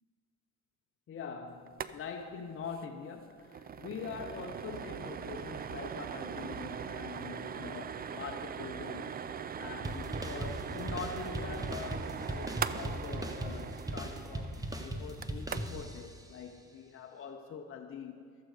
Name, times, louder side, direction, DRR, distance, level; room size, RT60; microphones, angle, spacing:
voice 1, 1.1-9.3 9.6-18.4, left 6 dB, 45° left, 0.7 m, -44 dB
sound 1, 1.7-1.9 2.2-2.3 2.6-2.8 3.2-15.9, right 7 dB, 30° right, 0.4 m, -41 dB
sound 2, 9.8-16.2, right 1 dB, 10° right, 0.9 m, -39 dB
13.0 x 7.7 x 4.8 m
cardioid pair, 90°, 30 cm